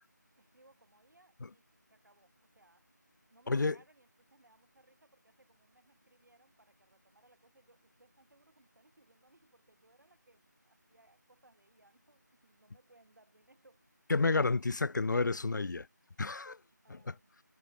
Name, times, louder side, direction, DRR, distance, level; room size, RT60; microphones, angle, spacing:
voice 1, 0.4-1.6 1.9-2.9 3.3-13.8 16.8-17.4, right 2 dB, 70° right, 6.7 m, -66 dB
voice 2, 14.1-15.9 16.2-16.6 16.9-17.1, left 3 dB, 70° left, 0.4 m, -30 dB
figure-of-eight pair, 170°, 10 cm